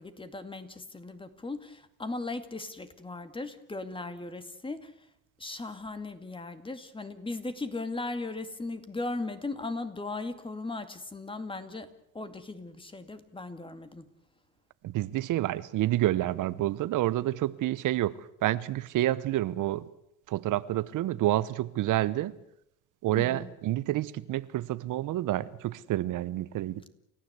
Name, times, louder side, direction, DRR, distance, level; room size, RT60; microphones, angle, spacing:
voice 1, 0.0-4.9 5.4-11.9 12.1-14.0 23.1-23.5, left 3 dB, 15° left, 2.2 m, -37 dB
voice 2, 14.8-19.9 20.3-22.3 23.0-26.9, right 15 dB, 65° right, 0.9 m, -29 dB
29.0 x 15.5 x 8.2 m
cardioid pair, 110°, 34 cm